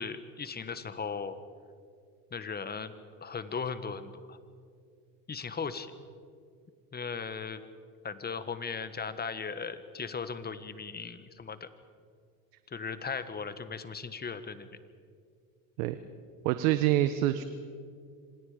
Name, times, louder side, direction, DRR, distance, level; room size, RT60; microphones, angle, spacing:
voice 1, 0.0-1.3 2.3-2.9 3.2-4.4 5.3-5.9 6.9-7.6 8.0-11.7 12.7-14.7, left 5 dB, 20° left, 11 dB, 1.7 m, -37 dB
voice 2, 16.4-17.4, right 14 dB, 75° right, 11 dB, 1.2 m, -26 dB
27.0 x 26.0 x 5.2 m, 2.2 s
supercardioid pair, 100°, 43 cm